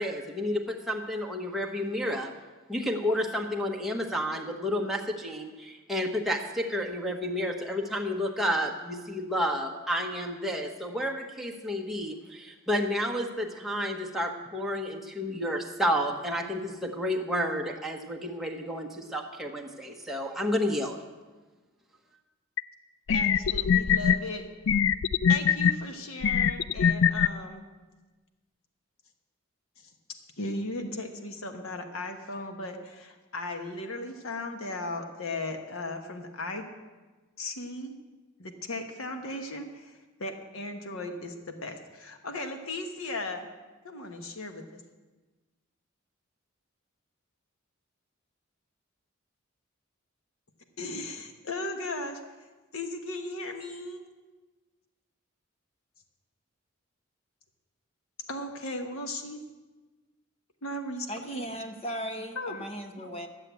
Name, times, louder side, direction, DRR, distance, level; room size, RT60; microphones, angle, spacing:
voice 1, 0.0-2.3 2.7-21.0, equal, ahead, 0 dB, 1.1 m, -31 dB
sound 1, 22.6-22.7 23.1-24.2 24.7-25.7 26.2-27.3, left 7 dB, 65° left, 0.3 m, -22 dB
voice 2, 23.1-24.4 25.3-27.7 29.8-29.9 30.4-36.6 37.4-37.9 38.4-43.5 43.8-44.8 50.8-52.2 52.7-54.0 58.3-59.4 60.6-61.6 62.4-62.7, left 2 dB, 90° left, 6 dB, 1.3 m, -37 dB
voice 3, 61.1-63.3, equal, 30° left, 5 dB, 1.0 m, -37 dB
12.5 x 7.5 x 8.2 m, 1.3 s
head